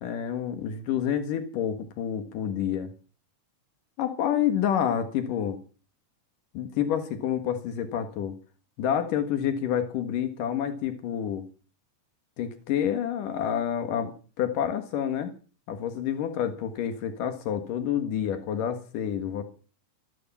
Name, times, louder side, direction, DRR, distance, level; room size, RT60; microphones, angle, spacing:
voice 1, 0.0-2.9 4.0-5.6 6.5-8.4 8.8-11.4 12.4-15.3 15.7-19.4, left 9 dB, 85° left, 8 dB, 3.3 m, -28 dB
14.5 x 13.5 x 7.2 m, 0.38 s
omnidirectional pair, 3.7 m